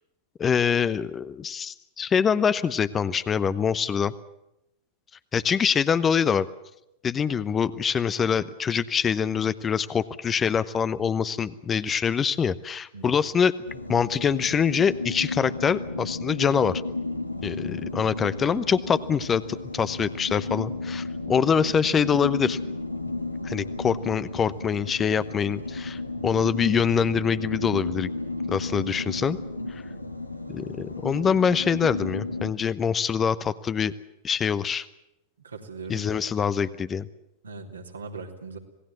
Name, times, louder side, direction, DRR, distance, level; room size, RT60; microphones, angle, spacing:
voice 1, 0.4-4.1 5.3-6.5 7.0-16.8 17.4-22.6 23.4-28.1 28.5-29.4 30.5-33.9 34.2-34.9 35.9-37.1, left 7 dB, 20° left, 15 dB, 0.9 m, -24 dB
sound 1, 13.7-32.5, left 2 dB, 85° left, 1.6 m, -33 dB
voice 2, 35.4-36.1 37.4-38.6, right 4 dB, 75° right, 2 dB, 3.0 m, -39 dB
27.0 x 18.5 x 7.7 m, 0.86 s
figure-of-eight pair, 90°, 0 cm